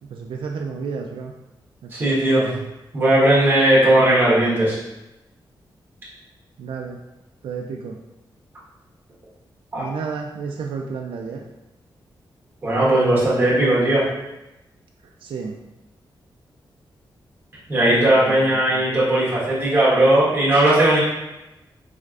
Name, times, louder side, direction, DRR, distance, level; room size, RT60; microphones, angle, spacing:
voice 1, 0.0-1.3 1.8-2.5 6.6-7.0 7.4-8.0 9.8-11.4 15.2-15.6 17.9-18.4 18.7-18.8, right 5 dB, 85° right, 2 dB, 0.3 m, -31 dB
voice 2, 1.9-2.5 2.9-4.8 9.7-9.9 12.6-14.1 17.7-21.0, right 1 dB, 25° right, -7 dB, 1.4 m, -17 dB
4.3 x 3.2 x 2.4 m, 0.97 s
wide cardioid pair, 160°, 9 cm